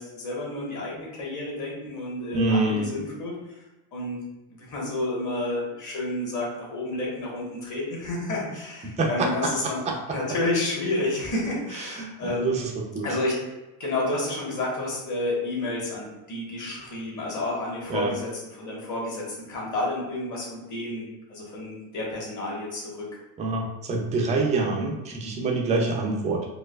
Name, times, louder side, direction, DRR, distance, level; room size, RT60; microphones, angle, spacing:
voice 1, 0.0-3.6 3.9-4.2 4.5-9.8 10.1-12.5 13.0-13.4 13.8-21.0 21.3-23.1, left 2 dB, 35° left, -3 dB, 1.3 m, -30 dB
voice 2, 2.3-2.9 8.8-9.5 9.9-10.0 11.8-13.1 17.9-18.1 23.4-26.4, right 3 dB, 15° right, 0 dB, 0.3 m, -26 dB
4.5 x 2.3 x 2.2 m, 1.0 s
supercardioid pair, 115°, 50 cm